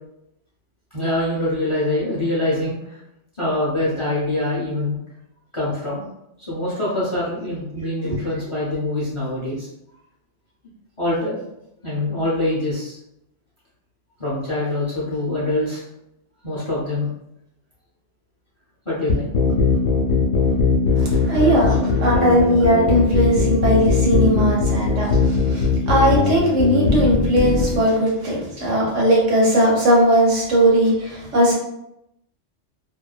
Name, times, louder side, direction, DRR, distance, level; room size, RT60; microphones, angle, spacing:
voice 1, 0.9-3.0 3.4-5.0 5.5-6.0 6.5-9.7 11.0-11.4 11.8-13.0 14.2-15.8 16.4-17.1 18.9-19.3 20.7-21.4, left 1 dB, 35° left, -8 dB, 0.5 m, -24 dB
sound 1, 19.1-27.8, left 4 dB, 85° left, 0.9 m, -19 dB
voice 2, 21.3-31.5, right 1 dB, 80° right, -4 dB, 1.2 m, -18 dB
2.5 x 2.2 x 2.3 m, 0.82 s
omnidirectional pair, 1.2 m